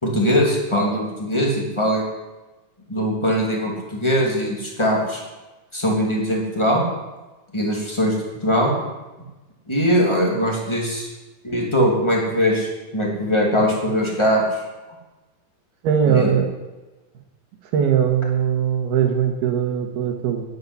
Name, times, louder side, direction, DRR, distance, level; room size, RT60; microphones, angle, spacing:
voice 1, 0.0-2.0 2.9-5.2 5.7-6.8 7.5-8.1 8.4-8.7 9.7-11.1 11.4-14.4 16.0-16.3, equal, 10° left, -2 dB, 2.2 m, -21 dB
voice 2, 15.8-16.5 17.7-20.4, right 8 dB, 70° right, 4 dB, 3.3 m, -20 dB
11.5 x 8.7 x 9.9 m, 1.1 s
omnidirectional pair, 5.0 m